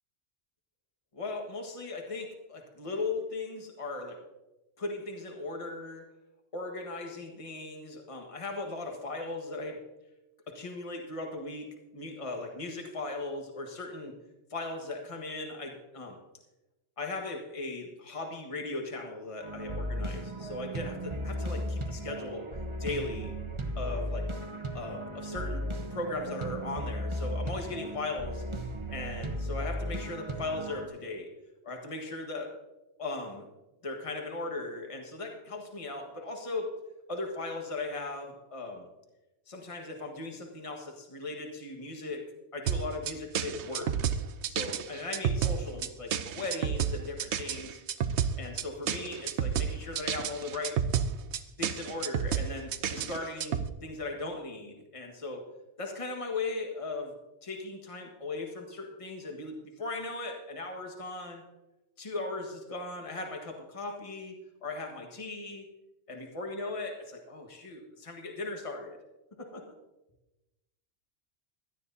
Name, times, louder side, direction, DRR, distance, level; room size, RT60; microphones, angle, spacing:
voice 1, 1.1-4.2 4.8-6.1 6.5-9.8 10.5-14.1 14.5-16.2 17.0-22.5 22.8-23.3 23.7-24.3 24.7-25.6 25.9-28.4 28.9-31.3 31.6-32.6 33.0-33.5 33.8-36.7 37.1-38.9 39.5-42.2 42.5-43.9 44.5-47.8 48.4-50.8 51.6-55.4 55.8-57.1 57.4-61.4 62.0-65.7 66.1-69.0 69.4-69.6, left 2 dB, 30° left, 2 dB, 1.5 m, -38 dB
sound 1, 19.4-30.9, equal, 30° right, 0.9 m, -36 dB
sound 2, 42.7-53.7, right 8 dB, 80° right, 1.0 m, -30 dB
17.5 x 12.5 x 2.8 m, 1.0 s
omnidirectional pair, 1.2 m